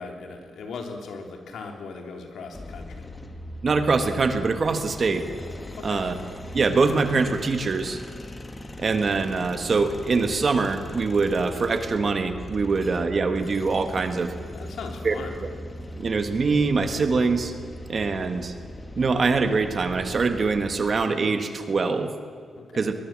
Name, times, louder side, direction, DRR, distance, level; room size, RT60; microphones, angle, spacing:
voice 1, 0.0-3.1 5.8-6.0 14.5-15.4 22.6-22.8, left 4 dB, 80° left, 3 dB, 3.2 m, -38 dB
sound 1, 2.5-21.0, left 1 dB, 15° left, 1.4 m, -39 dB
voice 2, 3.6-5.3 5.8-6.1 6.5-8.0 8.8-14.3 15.0-15.1 16.0-17.5 17.9-18.5 19.0-22.1 22.7-22.9, right 4 dB, 35° right, 7 dB, 1.6 m, -23 dB
22.5 x 20.5 x 7.6 m, 2.1 s
wide cardioid pair, 180°, 0 cm